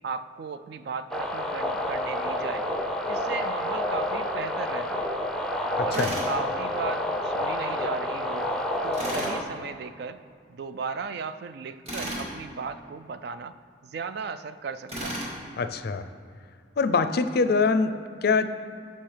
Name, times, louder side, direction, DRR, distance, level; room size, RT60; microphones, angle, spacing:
voice 1, 0.0-2.7 3.1-5.1 5.8-8.5 8.8-10.2 10.5-13.5 13.8-15.2, right 5 dB, 60° right, 11 dB, 0.3 m, -36 dB
sound 1, 1.1-9.4, left 1 dB, 5° left, 0.6 m, -29 dB
voice 2, 5.8-6.1 15.6-16.1 16.8-18.5, left 4 dB, 55° left, 10 dB, 0.4 m, -24 dB
Tools, 5.9-6.3 8.9-9.4 11.9-12.3 14.9-15.3, equal, 35° right, 2.0 m, -33 dB
11.5 x 6.7 x 3.3 m, 2.3 s
head